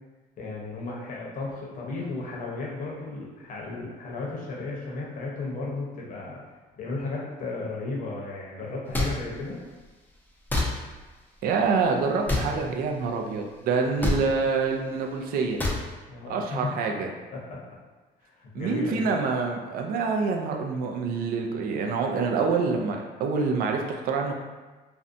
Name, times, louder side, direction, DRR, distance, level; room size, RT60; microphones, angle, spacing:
voice 1, 0.4-6.4 6.8-9.6 16.1-16.7 17.3-17.6 18.2-19.1, left 3 dB, 50° left, -3 dB, 0.7 m, -34 dB
sound 1, 8.9-9.1 10.5-10.7 12.3-12.5 14.0-14.2 15.6-15.8, left 2 dB, 10° left, 0.4 m, -24 dB
voice 2, 11.4-15.6 16.3-17.1 18.5-24.3, right 4 dB, 60° right, 2 dB, 0.4 m, -26 dB
2.5 x 2.1 x 2.5 m, 1.2 s
cardioid pair, 110°, 17 cm